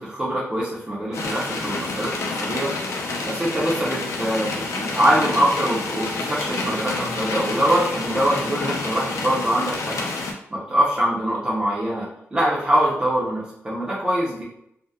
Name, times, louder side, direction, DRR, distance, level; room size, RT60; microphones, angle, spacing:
voice 1, 0.0-2.7 3.2-10.1 10.5-14.4, equal, 20° right, -7 dB, 0.5 m, -23 dB
sound 1, 1.1-10.3, left 3 dB, 90° left, 0.4 m, -28 dB
2.7 x 2.0 x 2.2 m, 0.74 s
wide cardioid pair, 140°, 5 cm